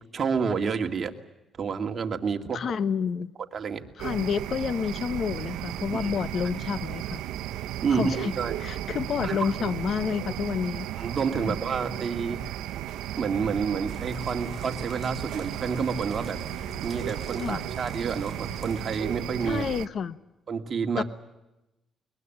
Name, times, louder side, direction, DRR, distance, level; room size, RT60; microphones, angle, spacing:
voice 1, 0.1-1.1 1.6-2.8 3.5-3.8 5.9-6.1 7.8-8.6 9.2-9.5 11.0-12.4 13.2-16.4 16.8-19.6 20.5-21.0, right 5 dB, 45° right, 5 dB, 2.4 m, -29 dB
voice 2, 2.5-3.3 4.0-7.2 7.9-8.3 8.6-10.9 11.4-11.6 17.4-17.6 19.4-20.2 21.0-21.1, left 7 dB, 55° left, 15 dB, 1.0 m, -29 dB
sound 1, 4.0-19.9, right 13 dB, 90° right, 0.9 m, -35 dB
sound 2, 13.9-19.0, left 2 dB, 30° left, 6.7 m, -45 dB
21.5 x 21.5 x 9.3 m, 0.95 s
cardioid pair, 90°, 0 cm